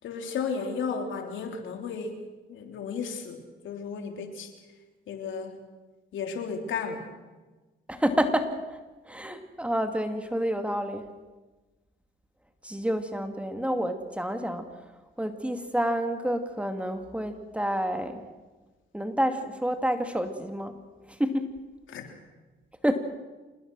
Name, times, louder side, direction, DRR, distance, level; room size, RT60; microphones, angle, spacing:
voice 1, 0.0-2.2 2.5-4.5 5.1-5.6 6.1-7.1 21.9-22.1, left 5 dB, 75° left, 4 dB, 3.5 m, -34 dB
voice 2, 7.9-8.8 9.1-11.0 12.6-14.7 15.2-18.2 18.9-20.7 21.1-21.5 22.8-22.9, equal, 5° right, 6 dB, 2.4 m, -28 dB
27.0 x 19.5 x 6.3 m, 1.2 s
cardioid pair, 90°, 20 cm